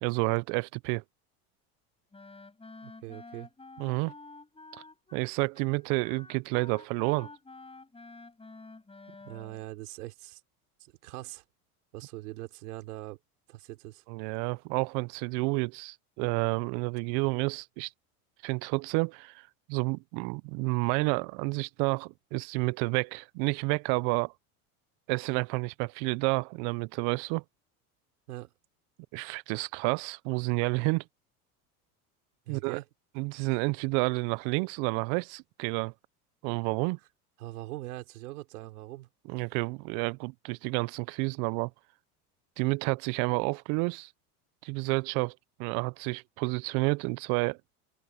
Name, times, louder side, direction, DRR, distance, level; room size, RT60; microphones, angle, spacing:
voice 1, 0.0-1.0 3.8-4.1 4.7-4.8 5.1-7.3 14.1-17.9 18.4-24.3 25.1-27.4 29.1-31.0 32.5-32.8 33.2-35.9 36.4-37.0 39.3-41.7 42.6-44.1 44.6-45.3 45.6-47.6, right 30 dB, 60° right, 0.9 m, -30 dB
Wind instrument woodwind instrument, 2.1-9.6, left 3 dB, 10° left, 6.6 m, -50 dB
voice 2, 2.8-3.5 9.2-10.4 10.8-11.4 11.9-13.2 13.5-14.0 28.3-28.5 32.5-32.8 37.4-39.1, right 18 dB, 75° right, 4.1 m, -42 dB
hypercardioid pair, 90°, 45 cm